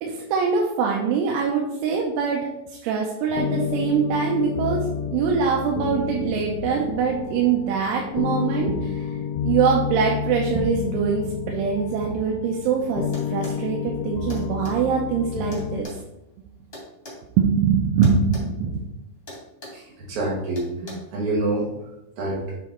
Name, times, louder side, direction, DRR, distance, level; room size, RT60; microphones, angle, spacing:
voice 1, 0.0-4.8 5.1-9.1 9.4-15.9 17.4-18.8, right 6 dB, 80° right, -1 dB, 3.1 m, -23 dB
sound 1, 3.3-15.8, left 8 dB, 85° left, 2.8 m, -30 dB
sound 2, 13.1-13.6 14.3-14.8 15.5-17.2 18.0-18.5 18.7-18.9 19.3-19.8 20.6-20.9, left 1 dB, 30° left, 1.0 m, -39 dB
voice 2, 20.1-21.7 22.2-22.6, right 2 dB, 65° right, -3 dB, 1.9 m, -26 dB
8.6 x 4.1 x 4.3 m, 0.88 s
omnidirectional pair, 5.7 m